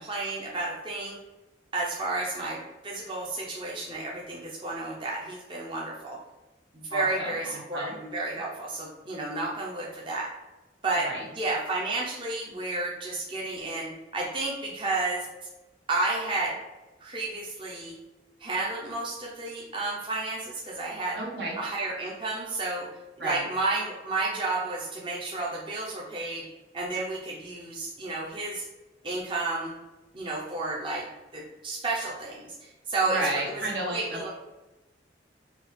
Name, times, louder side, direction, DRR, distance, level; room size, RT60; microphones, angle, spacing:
voice 1, 0.1-1.2 1.7-6.2 6.7-10.3 10.8-15.3 15.9-16.5 17.0-17.9 18.4-21.2 21.5-22.9 23.2-26.4 26.7-28.6 29.0-29.7 30.1-31.0 31.3-33.4 33.9-34.3, right 2 dB, 30° right, -4 dB, 0.6 m, -31 dB
voice 2, 6.9-7.9 11.0-11.3 21.1-21.6 23.2-23.4 33.1-34.3, right 1 dB, 70° right, -2 dB, 1.2 m, -32 dB
5.0 x 2.4 x 3.2 m, 1.1 s
head